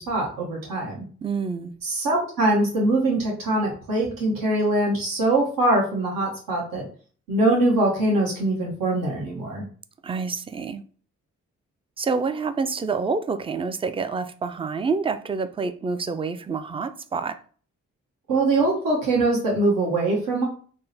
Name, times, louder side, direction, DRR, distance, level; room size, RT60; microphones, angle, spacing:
voice 1, 0.0-1.0 1.8-6.8 7.3-9.6 18.3-20.4, right 2 dB, 70° right, 1.2 m, -23 dB
voice 2, 1.2-1.7 10.0-10.8 12.0-17.4, right 4 dB, 15° right, 0.4 m, -27 dB
3.6 x 2.1 x 4.0 m
supercardioid pair, 45°, 35 cm